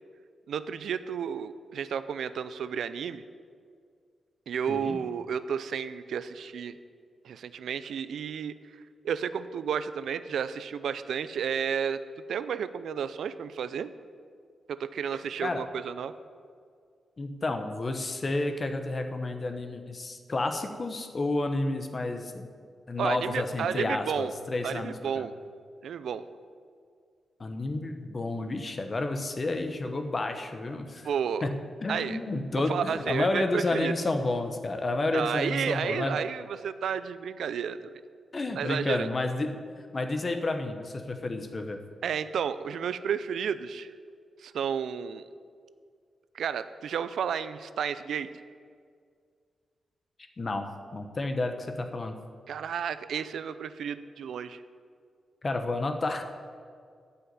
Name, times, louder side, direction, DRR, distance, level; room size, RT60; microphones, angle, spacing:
voice 1, 0.5-3.2 4.5-6.8 7.2-8.5 9.0-12.0 12.3-13.9 14.7-16.1 23.0-24.3 24.6-25.3 25.8-26.2 31.0-31.5 31.9-32.2 32.7-33.9 35.1-37.8 38.6-39.1 42.0-43.9 44.4-45.3 46.3-48.3 52.5-54.6, right 7 dB, 80° right, 13 dB, 0.5 m, -32 dB
voice 2, 4.7-5.0 15.4-15.6 17.2-22.5 22.9-25.3 27.4-31.1 31.4-36.2 38.3-39.6 39.9-41.8 50.4-50.7 50.9-52.1 55.4-56.2, left 2 dB, 30° left, 6 dB, 0.9 m, -30 dB
12.5 x 5.7 x 9.4 m, 2.1 s
wide cardioid pair, 165°, 0 cm